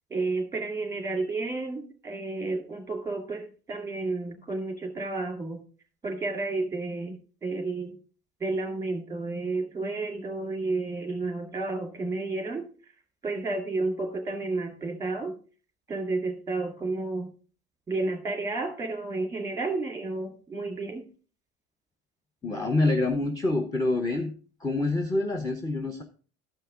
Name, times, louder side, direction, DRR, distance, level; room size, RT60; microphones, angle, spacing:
voice 1, 0.1-5.6 6.0-8.0 8.4-12.7 13.2-15.4 15.9-17.3 17.9-21.1, right 3 dB, 5° right, 4 dB, 2.1 m, -31 dB
voice 2, 22.4-24.3 24.6-26.0, left 2 dB, 10° left, 5 dB, 0.7 m, -26 dB
12.5 x 5.6 x 3.6 m, 0.40 s
figure-of-eight pair, 75°, 44 cm